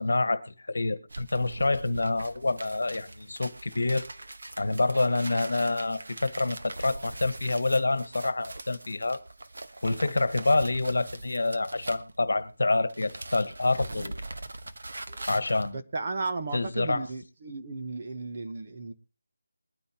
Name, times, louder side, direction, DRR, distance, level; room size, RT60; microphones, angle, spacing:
voice 1, 0.0-4.1 4.6-9.2 9.8-14.2 15.3-15.8 16.5-17.0, left 2 dB, 70° left, 1.2 m, -27 dB
sound 1, 1.1-12.5 12.8-15.7, right 2 dB, 60° right, 1.1 m, -42 dB
voice 2, 15.7-18.9, right 3 dB, 30° right, 1.0 m, -35 dB
22.0 x 9.3 x 2.9 m
figure-of-eight pair, 175°, 0 cm